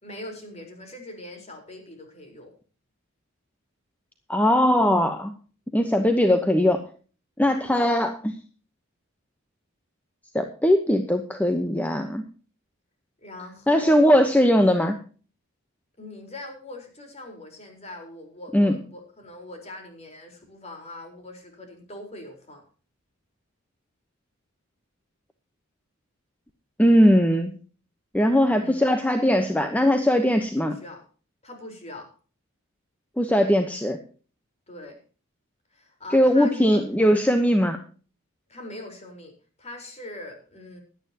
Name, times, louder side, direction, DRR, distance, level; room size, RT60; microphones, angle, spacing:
voice 1, 0.0-2.5 7.7-7.9 13.2-14.3 16.0-22.6 28.5-28.9 30.6-31.0 31.4-32.1 34.7-35.0 35.7-36.8 38.5-40.8, left 1 dB, 30° left, 3 dB, 4.4 m, -41 dB
voice 2, 4.3-5.3 5.7-6.8 7.4-8.3 10.3-12.2 13.7-15.0 18.5-18.8 26.8-27.5 28.1-30.8 33.2-34.0 36.1-37.8, equal, 5° left, 7 dB, 1.0 m, -20 dB
17.0 x 11.5 x 2.9 m, 0.39 s
head